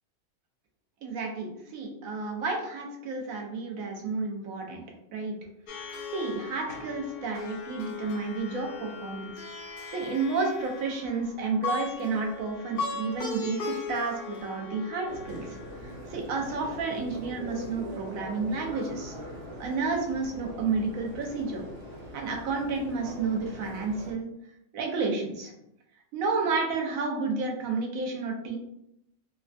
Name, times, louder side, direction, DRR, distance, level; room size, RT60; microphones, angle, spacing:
voice 1, 1.0-4.8 5.1-5.4 6.1-9.3 9.6-15.6 16.1-19.1 19.6-21.7 22.1-24.3 24.7-25.5 26.1-28.6, right 4 dB, 75° right, 1 dB, 1.1 m, -31 dB
Plucked string instrument, 5.7-16.0, left 3 dB, 65° left, 0.6 m, -38 dB
sound 1, 15.1-24.1, equal, 40° right, 0.8 m, -42 dB
3.4 x 2.2 x 2.4 m, 0.80 s
omnidirectional pair, 1.4 m